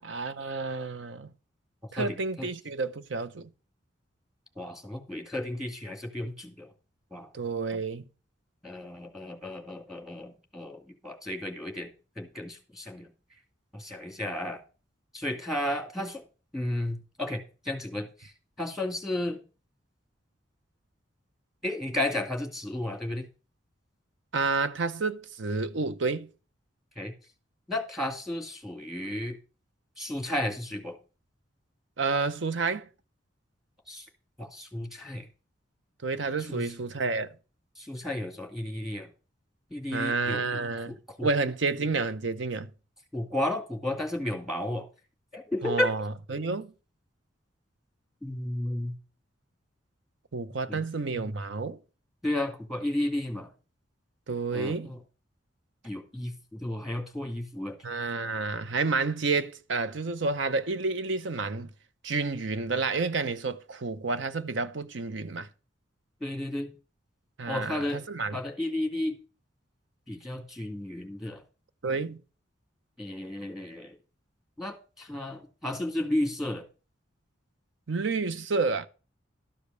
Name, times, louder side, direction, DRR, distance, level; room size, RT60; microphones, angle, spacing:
voice 1, 0.1-1.3 1.9-3.5 7.3-8.0 24.3-26.3 32.0-32.9 36.0-37.3 39.9-42.7 45.6-46.7 50.3-51.8 54.3-54.9 57.8-61.7 62.0-65.5 67.4-68.4 71.8-72.2 77.9-78.9, right 4 dB, 70° right, 0.7 m, -30 dB
voice 2, 2.0-2.5 4.6-6.7 7.1-7.3 8.6-13.1 13.7-14.6 15.1-16.2 16.5-18.3 18.6-19.4 21.6-23.3 27.0-27.1 27.7-29.4 30.0-31.0 33.9-34.0 34.4-35.3 36.5-36.6 37.8-39.1 39.7-40.4 41.2-41.3 43.1-44.9 45.3-45.9 48.2-48.9 50.7-50.9 51.1-51.2 52.2-53.5 54.5-55.0 55.8-57.8 66.2-66.7 67.5-68.0 68.3-69.2 70.1-71.4 73.0-73.9 74.6-76.6, left 1 dB, ahead, 2.2 m, -33 dB
12.5 x 5.1 x 6.7 m
head